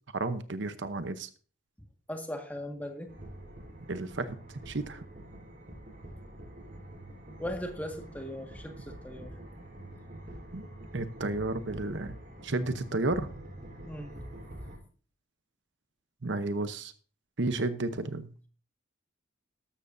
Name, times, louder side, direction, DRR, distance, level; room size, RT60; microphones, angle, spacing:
voice 1, 0.1-1.3 3.9-4.4 4.7-5.0 10.5-10.6 10.9-12.2 12.4-13.3 16.2-16.9 17.4-18.5, right 2 dB, 65° right, 10 dB, 0.9 m, -32 dB
voice 2, 2.1-3.1 7.4-9.3 13.8-14.2 17.9-18.2, left 1 dB, 10° left, 3 dB, 1.7 m, -39 dB
sound 1, 3.1-14.8, right 1 dB, 45° right, 4.3 m, -46 dB
13.0 x 13.0 x 2.7 m, 0.39 s
head